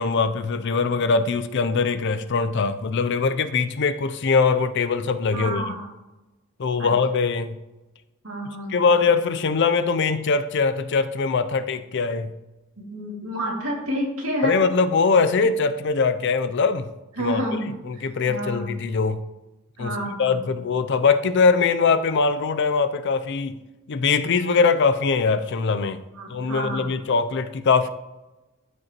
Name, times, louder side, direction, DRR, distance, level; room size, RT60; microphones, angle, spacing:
voice 1, 0.0-5.8 6.6-7.6 8.7-12.3 14.4-16.9 17.2-17.4 17.9-19.2 19.8-23.5 23.9-26.0 26.3-27.9, left 4 dB, 55° left, 11 dB, 0.5 m, -22 dB
voice 2, 5.3-5.9 6.8-6.9 8.2-8.9 12.8-14.6 17.2-18.7 19.8-20.6 26.1-27.0, equal, 75° right, -2 dB, 2.3 m, -30 dB
13.0 x 5.3 x 3.0 m, 1.0 s
head